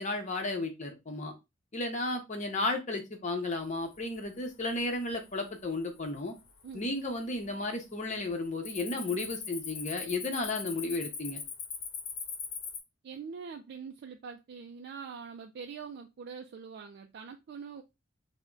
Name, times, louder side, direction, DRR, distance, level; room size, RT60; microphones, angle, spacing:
voice 1, 0.0-1.3 1.7-6.3 6.7-11.4, left 2 dB, 40° left, 0.7 m, -33 dB
Cricket, 3.8-4.3 4.7-5.1 5.7-5.8 6.5-7.1 7.3-7.6 7.9-12.8, left 6 dB, 85° left, 0.7 m, -40 dB
voice 2, 13.0-17.8, right 6 dB, 55° right, 0.3 m, -44 dB
3.4 x 2.1 x 3.7 m
head